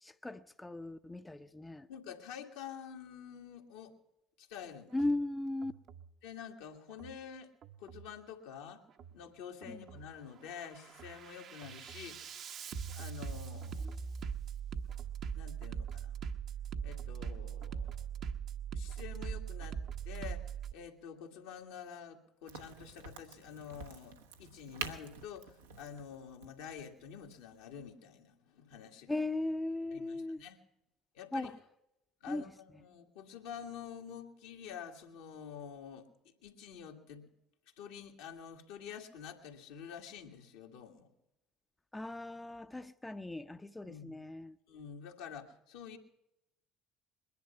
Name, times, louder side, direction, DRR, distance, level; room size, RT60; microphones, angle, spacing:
voice 1, 0.0-1.9 4.9-5.7 9.7-9.8 13.8-14.0 29.1-30.4 31.3-31.5 32.3-32.4 41.9-44.6, left 2 dB, 15° left, 0.7 m, -37 dB
voice 2, 1.9-3.9 4.4-5.0 6.2-7.5 7.8-8.8 9.1-12.2 12.9-14.0 15.4-16.1 16.8-18.1 18.7-19.8 20.1-29.2 29.9-30.6 31.1-31.5 32.2-36.1 36.4-37.3 37.8-41.1 43.8-44.2 44.7-46.0, left 8 dB, 75° left, 1.8 m, -48 dB
Bass drum, 4.9-5.1 5.6-6.1 6.9-7.1 7.6-8.1 8.9-9.1 9.6-10.1 10.5-20.7, right 7 dB, 55° right, 1.0 m, -41 dB
Crack, 22.5-27.9, right 6 dB, 85° right, 1.1 m, -48 dB
21.5 x 10.5 x 5.7 m
hypercardioid pair, 60°, 0 cm